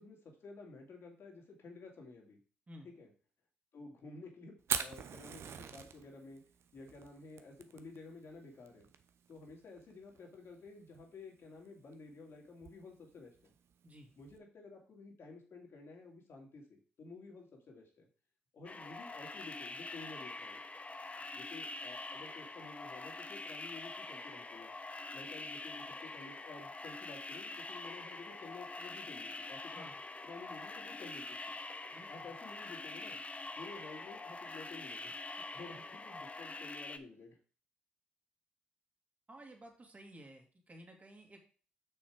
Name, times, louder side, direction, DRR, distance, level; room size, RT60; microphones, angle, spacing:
voice 1, 0.0-2.4 2.8-3.1 3.7-6.4 6.7-8.9 9.3-13.5 14.2-18.1 18.5-20.6 21.3-24.7 25.1-29.9 30.2-31.6 32.1-33.2 33.6-37.4, left 3 dB, 60° left, 1 dB, 2.5 m, -52 dB
Fire, 4.6-14.4, right 7 dB, 60° right, 0.8 m, -45 dB
sound 1, 18.6-37.0, left 3 dB, 25° left, 0.9 m, -45 dB
voice 2, 31.9-32.3 39.3-41.4, right 1 dB, 30° right, 2 dB, 2.7 m, -54 dB
6.3 x 5.7 x 4.9 m, 0.39 s
hypercardioid pair, 45°, 5 cm